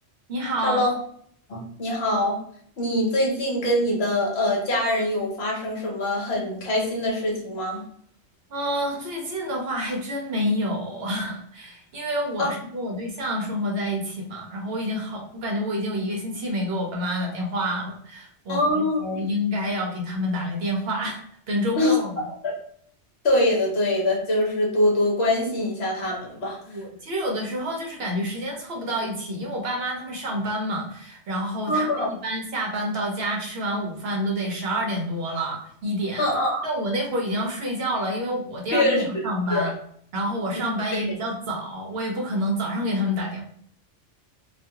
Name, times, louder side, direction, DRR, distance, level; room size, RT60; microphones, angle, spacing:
voice 1, 0.3-0.9 8.5-22.2 26.7-36.3 36.6-39.7 40.1-43.4, equal, 65° right, 1 dB, 0.7 m, -28 dB
voice 2, 1.5-2.4 2.8-7.8 12.4-12.5 18.5-19.0 21.8-22.0 22.4-22.5 23.2-26.6 31.7-32.1 36.2-36.6 38.7-39.0 39.5-39.7, left 1 dB, 60° left, -2 dB, 1.0 m, -23 dB
2.3 x 2.3 x 2.7 m, 0.62 s
omnidirectional pair, 1.3 m